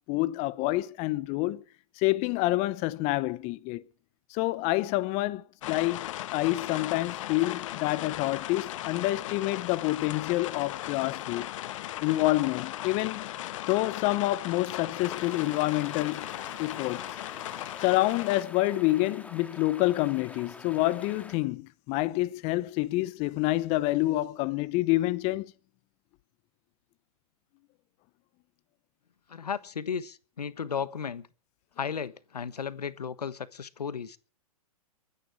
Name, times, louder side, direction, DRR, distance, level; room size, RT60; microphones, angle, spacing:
voice 1, 0.1-1.6 2.0-3.8 4.3-6.1 6.3-11.5 12.0-13.3 13.7-16.3 16.6-17.0 17.8-25.5, left 18 dB, 35° left, 0.8 m, -27 dB
sound 1, 5.6-18.4, left 14 dB, 55° left, 1.0 m, -37 dB
sound 2, 14.9-21.4, left 3 dB, 5° left, 1.9 m, -47 dB
voice 2, 29.3-31.3 31.8-34.2, left 7 dB, 85° left, 1.3 m, -34 dB
24.0 x 9.8 x 4.8 m
hypercardioid pair, 120°, 20 cm